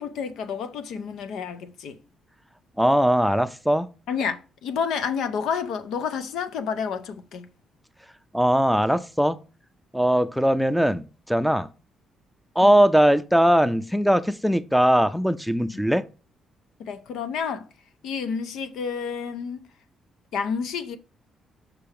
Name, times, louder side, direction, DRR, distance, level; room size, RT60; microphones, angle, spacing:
voice 1, 0.0-2.0 4.1-7.5 15.7-15.8 16.8-17.7 18.0-19.7 20.3-21.0, left 6 dB, 80° left, 0.7 m, -30 dB
voice 2, 2.8-3.9 8.3-9.4 9.9-11.7 12.6-16.1, equal, ahead, 0.5 m, -20 dB
6.0 x 3.4 x 5.6 m
cardioid pair, 90°, 0 cm